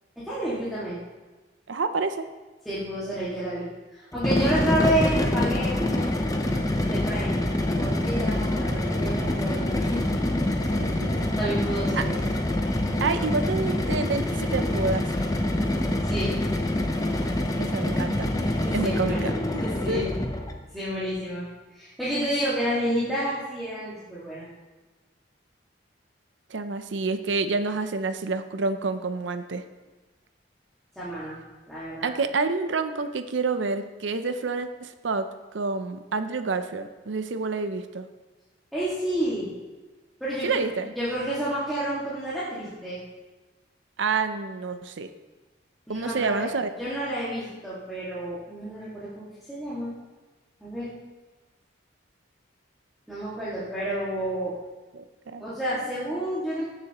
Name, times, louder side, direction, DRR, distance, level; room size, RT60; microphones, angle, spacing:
voice 1, 0.2-1.0 2.7-6.2 6.8-7.4 7.8-10.0 11.4-12.1 16.0-16.3 18.6-19.3 19.6-20.1 20.7-21.4 21.7-24.5 31.0-31.4 31.7-32.1 38.7-39.5 40.2-40.7 41.0-43.0 45.9-46.4 46.8-49.9 50.6-50.9 53.1-54.6 55.4-56.6, right 1 dB, ahead, -12 dB, 2.0 m, -30 dB
voice 2, 1.7-2.3 10.8-11.1 12.0-12.1 13.0-15.1 17.6-18.3 18.7-20.1 26.5-29.6 32.0-38.1 40.4-40.9 44.0-45.1 45.9-46.7 54.9-55.8, right 4 dB, 75° right, 10 dB, 0.6 m, -28 dB
sound 1, 4.1-20.6, left 1 dB, 20° left, 0.7 m, -26 dB
16.0 x 6.8 x 3.0 m, 1.2 s
head